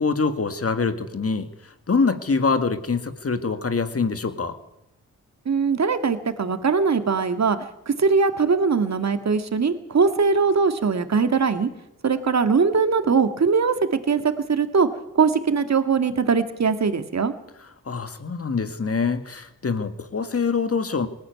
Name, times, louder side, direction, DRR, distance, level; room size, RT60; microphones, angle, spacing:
voice 1, 0.0-1.5 1.9-4.6 17.9-21.1, left 4 dB, 45° left, 10 dB, 2.1 m, -24 dB
voice 2, 5.5-7.6 7.9-11.7 12.0-14.2 14.5-14.9 15.2-17.3, right 5 dB, 55° right, 9 dB, 2.1 m, -21 dB
19.5 x 14.0 x 9.5 m, 0.86 s
cardioid pair, 50°, 32 cm